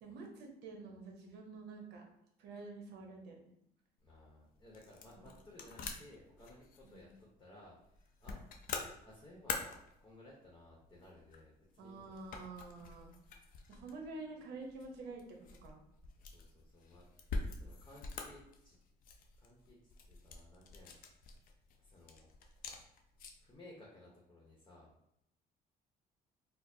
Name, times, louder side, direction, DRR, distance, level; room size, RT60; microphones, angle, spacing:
voice 1, 0.0-2.0 2.4-3.5 6.9-7.1 11.8-13.1 13.7-15.8, right 3 dB, 80° right, 2 dB, 0.8 m, -48 dB
sound 1, 4.0-23.5, left 4 dB, 55° left, 0.5 m, -47 dB
voice 2, 4.0-8.4 9.0-12.3 16.2-18.8 19.4-21.0 21.8-22.3 23.4-24.9, left 1 dB, 20° left, -3 dB, 0.8 m, -59 dB
4.3 x 2.0 x 2.7 m, 0.77 s
cardioid pair, 110°, 17 cm